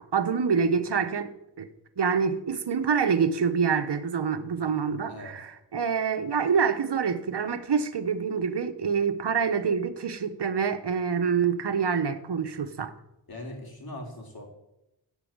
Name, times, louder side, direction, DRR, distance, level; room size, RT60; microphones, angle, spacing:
voice 1, 0.1-1.3 1.6-1.7 2.0-12.9, right 6 dB, 65° right, 9 dB, 1.2 m, -26 dB
voice 2, 5.1-5.4 13.3-14.5, left 1 dB, 50° left, 1 dB, 3.9 m, -40 dB
15.5 x 5.7 x 8.8 m, 0.87 s
wide cardioid pair, 85°, 44 cm